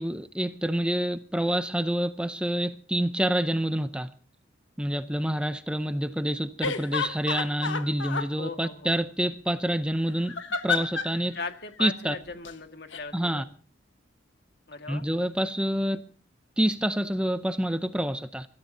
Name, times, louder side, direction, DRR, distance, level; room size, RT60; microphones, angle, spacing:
voice 1, 0.0-4.1 4.8-10.4 10.6-11.4 11.8-12.1 13.1-13.4 14.9-16.0 16.6-18.5, right 1 dB, 5° right, 0.6 m, -27 dB
sound 1, 6.6-8.3 10.2-11.2 12.3-12.5 12.9-13.0, left 5 dB, 80° left, 1.4 m, -30 dB
voice 2, 8.4-8.9 11.3-13.4 14.7-15.0, left 4 dB, 55° left, 1.8 m, -38 dB
24.5 x 14.0 x 2.7 m
head